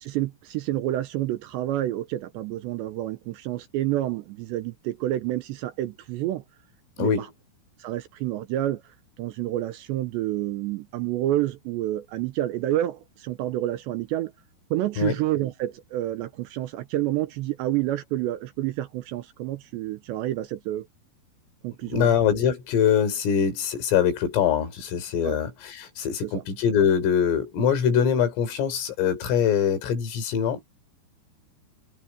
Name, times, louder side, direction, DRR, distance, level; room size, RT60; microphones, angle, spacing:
voice 1, 0.0-6.4 7.0-7.3 7.8-8.8 9.2-14.3 14.7-20.9 21.6-22.1 25.2-25.4 26.2-26.4, right 14 dB, 75° right, 2.8 m, -29 dB
voice 2, 21.8-30.6, left 8 dB, 80° left, 6.5 m, -23 dB
omnidirectional pair, 5.8 m